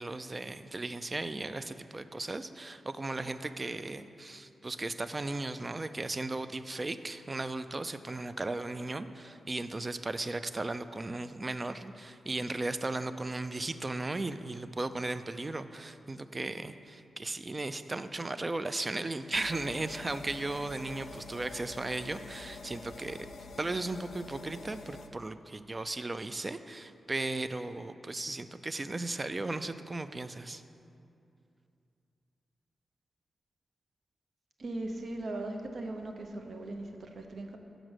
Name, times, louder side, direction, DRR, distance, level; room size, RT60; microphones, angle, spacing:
voice 1, 0.0-23.2 23.6-30.6, right 2 dB, 35° right, 11 dB, 0.3 m, -36 dB
sound 1, 19.3-25.1, left 3 dB, 80° left, 0.4 m, -47 dB
voice 2, 34.6-37.6, right 2 dB, 65° right, 4 dB, 0.7 m, -39 dB
6.3 x 5.1 x 6.1 m, 2.6 s
cardioid pair, 55°, 0 cm